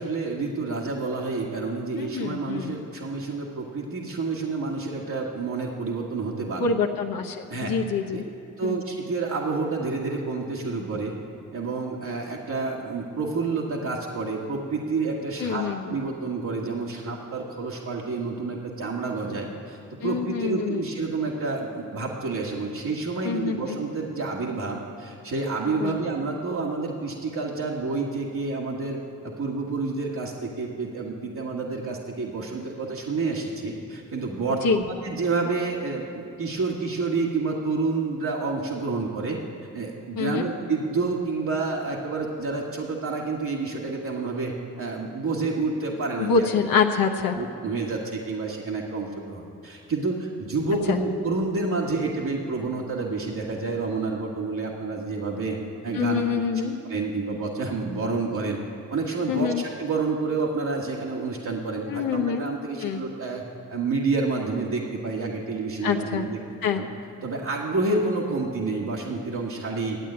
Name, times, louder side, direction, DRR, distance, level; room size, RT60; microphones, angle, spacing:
voice 1, 0.0-6.7 7.5-7.8 8.1-8.2 8.6-11.1 11.5-39.4 39.7-46.5 47.4-55.6 55.8-56.2 56.8-58.6 58.9-63.4 63.7-66.4 66.7-66.9 67.2-70.0, right 3 dB, 65° right, -4 dB, 1.7 m, -29 dB
voice 2, 2.0-2.7 6.6-8.2 8.6-8.8 15.4-15.9 20.0-20.8 23.2-23.8 25.8-26.0 34.6-34.8 40.2-40.4 46.2-47.4 50.9-51.0 55.9-56.7 59.3-59.6 61.9-62.4 62.8-63.0 65.8-66.2 66.6-66.8, left 6 dB, 80° left, 2 dB, 0.9 m, -25 dB
12.5 x 8.7 x 8.7 m, 2.6 s
supercardioid pair, 55°, 34 cm